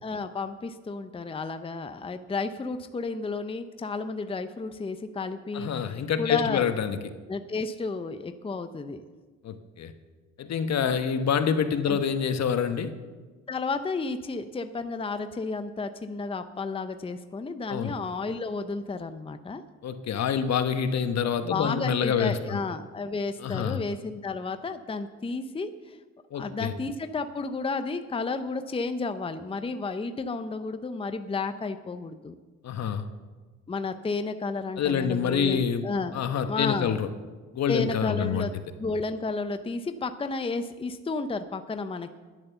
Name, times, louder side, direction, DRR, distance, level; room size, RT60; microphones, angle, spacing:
voice 1, 0.0-6.7 7.3-9.0 11.9-12.0 13.5-19.6 21.5-26.0 26.3-32.3 33.7-37.0 37.7-38.5 38.8-42.2, left 3 dB, 20° left, 9 dB, 0.7 m, -32 dB
voice 2, 5.5-7.0 9.4-9.9 10.4-12.9 17.7-17.9 19.8-22.6 23.4-23.8 26.3-26.7 32.6-33.0 34.8-35.8 36.1-37.1 37.5-38.5, left 7 dB, 60° left, 9 dB, 1.1 m, -26 dB
10.5 x 10.5 x 6.9 m, 1.4 s
cardioid pair, 90°, 30 cm